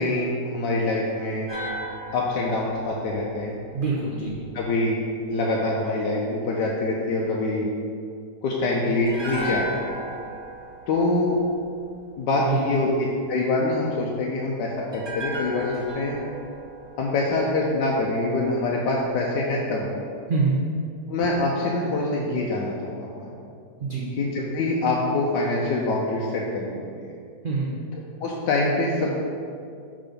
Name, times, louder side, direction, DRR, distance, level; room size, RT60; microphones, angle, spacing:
voice 1, 0.0-1.5 2.1-3.5 4.5-5.0 5.3-7.7 8.4-9.9 10.9-11.4 12.2-12.9 13.3-16.2 17.0-20.0 21.1-22.7 23.0-23.3 24.2-27.1 28.2-29.1, left 2 dB, 85° left, -3 dB, 1.3 m, -25 dB
sound 1, 1.5-4.7 9.1-12.3 14.9-18.1 18.4-18.5, equal, 20° right, 0.7 m, -36 dB
voice 2, 3.7-4.3 8.8-9.0 12.4-12.7 20.3-20.6 23.8-24.1 27.4-27.8, right 4 dB, 55° right, -6 dB, 0.5 m, -25 dB
6.0 x 3.8 x 5.1 m, 2.3 s
omnidirectional pair, 1.8 m